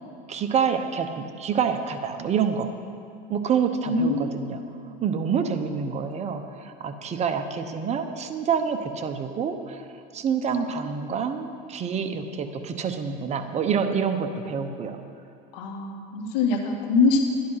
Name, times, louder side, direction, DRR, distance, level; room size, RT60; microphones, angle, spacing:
voice 1, 0.3-2.7 3.3-4.6 5.0-9.9 10.1-15.0, right 6 dB, 30° right, 7 dB, 0.9 m, -27 dB
voice 2, 3.8-4.4 4.8-4.9 15.5-17.2, left 4 dB, 80° left, 3 dB, 1.9 m, -23 dB
12.0 x 10.5 x 5.7 m, 2.7 s
supercardioid pair, 120°, 21 cm